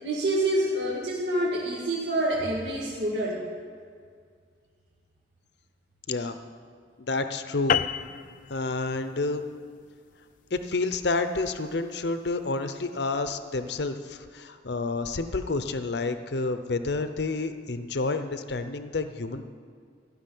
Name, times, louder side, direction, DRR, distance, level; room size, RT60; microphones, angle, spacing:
voice 1, 0.0-3.4, right 1 dB, 70° right, -5 dB, 2.0 m, -27 dB
voice 2, 7.0-7.8 8.5-9.5 10.5-19.4, left 3 dB, 65° left, 9 dB, 0.7 m, -29 dB
sound 1, 7.7-12.4, left 8 dB, 45° left, 0.3 m, -32 dB
15.0 x 6.3 x 10.0 m, 2.1 s
head